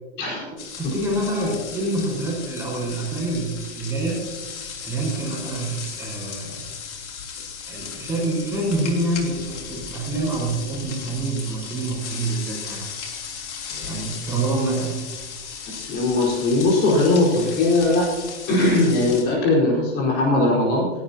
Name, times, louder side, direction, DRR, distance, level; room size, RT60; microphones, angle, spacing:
sound 1, 0.6-19.2, left 6 dB, 75° left, 3.6 m, -36 dB
voice 1, 0.8-4.2 4.8-6.6 7.7-12.8 13.7-15.1, right 2 dB, 5° right, -4 dB, 5.1 m, -26 dB
voice 2, 15.7-18.1 18.5-20.9, left 2 dB, 30° left, -3 dB, 4.8 m, -20 dB
29.5 x 12.0 x 3.0 m, 1.2 s
hypercardioid pair, 160°, 35 cm